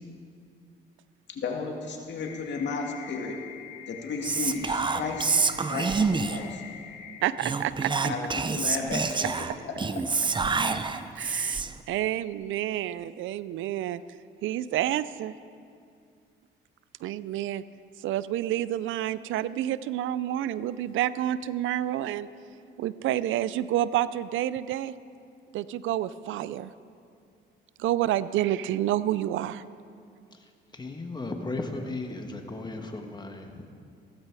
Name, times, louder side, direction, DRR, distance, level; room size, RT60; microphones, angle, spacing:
voice 1, 1.3-3.3 3.9-5.3 5.6-6.6 8.1-9.7, left 4 dB, 65° left, 1 dB, 2.2 m, -33 dB
sound 1, 2.2-7.2, left 9 dB, 85° left, 3.0 m, -45 dB
Whispering, 4.2-6.5 7.4-11.8, right 4 dB, 25° right, 0.6 m, -27 dB
voice 2, 7.2-7.9 11.2-14.0 14.4-15.3 17.0-17.6 18.0-22.3 22.8-24.9 25.5-26.7 27.8-29.6, right 13 dB, 80° right, 17 dB, 0.5 m, -29 dB
voice 3, 30.3-33.7, left 2 dB, 20° left, 4 dB, 1.5 m, -36 dB
16.0 x 14.0 x 4.8 m, 2.3 s
cardioid pair, 90°, 20 cm